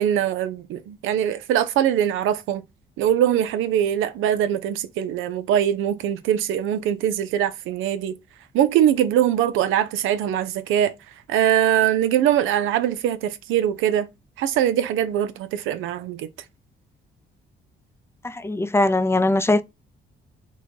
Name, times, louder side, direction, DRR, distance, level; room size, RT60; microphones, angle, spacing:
voice 1, 0.0-2.6 3.0-8.2 8.5-10.9 11.3-14.1 14.4-16.3, right 10 dB, 90° right, 0.6 m, -22 dB
voice 2, 18.2-19.6, left 2 dB, 15° left, 0.4 m, -20 dB
4.2 x 2.2 x 4.4 m
cardioid pair, 90°, 20 cm